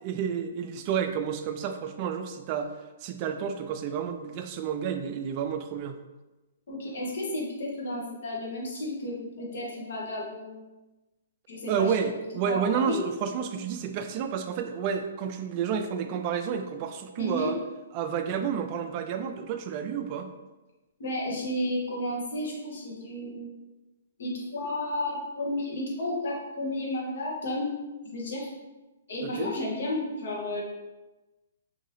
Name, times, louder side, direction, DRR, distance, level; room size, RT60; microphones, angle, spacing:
voice 1, 0.0-2.7 3.0-6.0 11.7-17.6 17.9-20.3 29.2-29.5, right 7 dB, 35° right, 6 dB, 0.3 m, -30 dB
voice 2, 6.7-10.6 11.5-12.1 12.5-13.0 17.2-17.5 21.0-23.5 24.2-27.8 28.1-28.5 29.1-30.6, left 1 dB, 65° left, -2 dB, 1.0 m, -32 dB
2.7 x 2.6 x 3.2 m, 1.1 s
hypercardioid pair, 145°, 0 cm